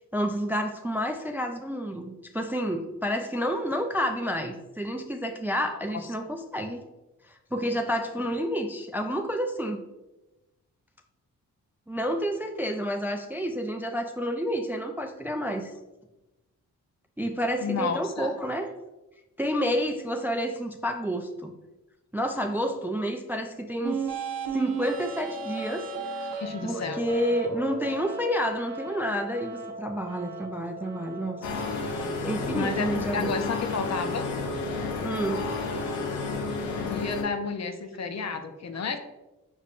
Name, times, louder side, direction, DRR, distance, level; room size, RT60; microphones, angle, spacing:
voice 1, 0.1-6.8 7.2-9.8 11.9-15.7 17.2-18.7 19.4-21.5 22.1-24.1 24.5-26.3 26.6-31.4 32.2-33.3 35.0-35.4, equal, 5° right, 5 dB, 0.4 m, -29 dB
voice 2, 17.6-18.3 26.3-27.0 32.5-34.2 36.8-39.0, left 5 dB, 45° left, 7 dB, 0.6 m, -31 dB
sound 1, 23.8-31.8, right 4 dB, 80° right, 0.7 m, -36 dB
sound 2, 31.4-37.2, left 3 dB, 85° left, 0.7 m, -31 dB
5.4 x 3.3 x 2.5 m, 1.0 s
supercardioid pair, 40°, 39 cm